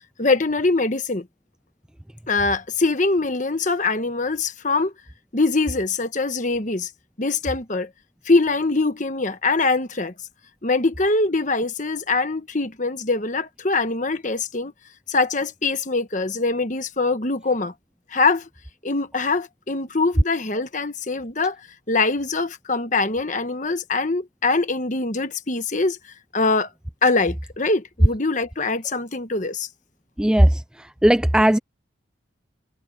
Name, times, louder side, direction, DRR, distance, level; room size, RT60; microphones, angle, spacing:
voice 1, 0.2-1.3 2.3-4.9 5.3-6.9 7.2-7.9 8.2-10.1 10.6-14.7 15.1-17.7 18.1-18.5 18.8-21.6 21.9-26.0 26.3-26.7 27.0-29.7, left 3 dB, 40° left, 1.2 m, -23 dB
voice 2, 30.2-31.6, right 1 dB, 5° right, 0.3 m, -17 dB
head